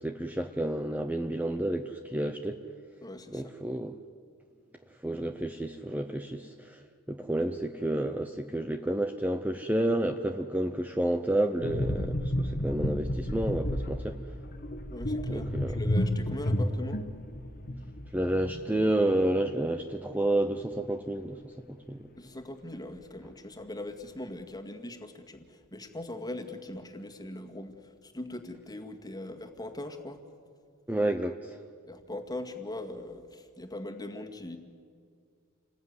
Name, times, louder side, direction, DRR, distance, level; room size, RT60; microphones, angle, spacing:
voice 1, 0.0-2.6 3.3-4.0 5.0-6.8 7.1-14.2 15.3-15.8 18.1-22.0 30.9-31.6, right 1 dB, 5° right, 6 dB, 0.8 m, -30 dB
voice 2, 3.0-3.5 14.9-17.0 22.1-30.2 31.8-34.6, left 1 dB, 20° left, 4 dB, 2.0 m, -41 dB
sound 1, 11.6-19.0 19.3-19.5, left 1 dB, 40° left, 1.5 m, -31 dB
29.0 x 20.5 x 9.7 m, 2.2 s
head